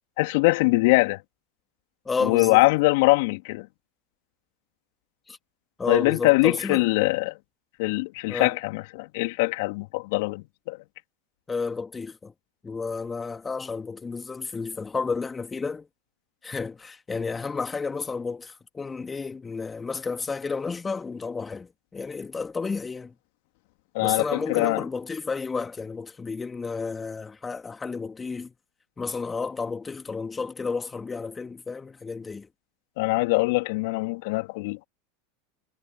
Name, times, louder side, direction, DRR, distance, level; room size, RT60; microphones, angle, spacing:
voice 1, 0.2-1.2 2.2-3.7 5.9-7.3 7.8-10.8 23.9-24.8 33.0-34.8, left 24 dB, 60° left, 3.0 m, -22 dB
voice 2, 2.0-2.6 5.3-5.4 5.8-6.9 8.3-8.5 11.5-12.3 12.6-15.9 16.4-23.1 24.0-28.5 29.0-32.5, left 4 dB, 20° left, 2.6 m, -31 dB
hypercardioid pair, 85°, 0 cm